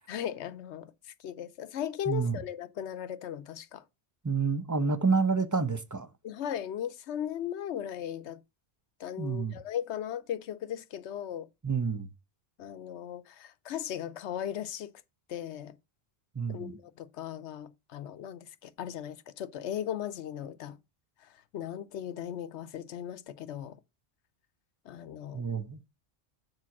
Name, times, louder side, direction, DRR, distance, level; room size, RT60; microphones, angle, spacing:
voice 1, 0.1-3.8 6.2-8.4 9.0-11.5 12.6-14.9 15.3-15.7 16.5-20.8 21.2-23.8 24.8-25.4, left 10 dB, 90° left, 1.0 m, -37 dB
voice 2, 2.1-2.4 4.2-6.1 9.2-9.6 11.6-12.1 16.3-16.7 25.3-25.8, right 5 dB, 20° right, 0.7 m, -29 dB
7.5 x 4.7 x 5.9 m
omnidirectional pair, 1.1 m